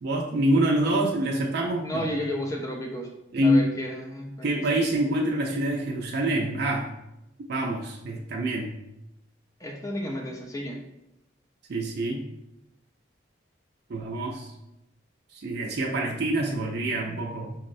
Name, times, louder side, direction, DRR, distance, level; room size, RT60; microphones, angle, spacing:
voice 1, 0.0-2.1 3.3-3.7 4.4-6.9 7.5-8.7 11.7-12.2 13.9-14.5 15.3-17.5, right 1 dB, 55° right, -1 dB, 0.4 m, -26 dB
voice 2, 1.8-3.1 3.4-4.6 9.6-10.8, equal, 15° left, 1 dB, 0.4 m, -32 dB
5.2 x 2.0 x 2.5 m, 0.88 s
head